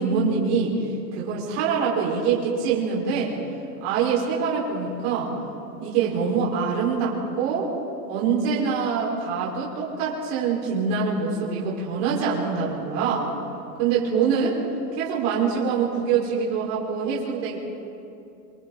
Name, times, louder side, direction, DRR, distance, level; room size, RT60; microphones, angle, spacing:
voice 1, 0.0-3.3 3.8-5.3 5.8-7.7 8.1-13.3 13.8-14.6 14.9-17.6, right 6 dB, 40° right, -5 dB, 5.2 m, -24 dB
27.0 x 26.0 x 4.1 m, 2.7 s
supercardioid pair, 170°, 49 cm